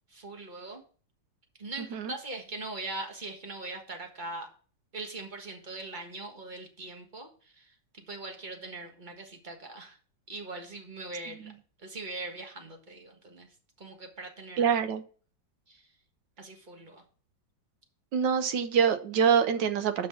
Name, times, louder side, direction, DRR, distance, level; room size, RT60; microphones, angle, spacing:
voice 1, 0.1-0.8 1.6-4.5 4.9-10.0 10.3-11.5 11.8-14.7 15.7-15.9 16.4-17.0, right 2 dB, 25° right, 3 dB, 1.5 m, -41 dB
voice 2, 14.6-15.0 18.1-20.1, right 7 dB, 70° right, 9 dB, 1.4 m, -25 dB
5.8 x 5.7 x 6.9 m, 0.40 s
omnidirectional pair, 2.0 m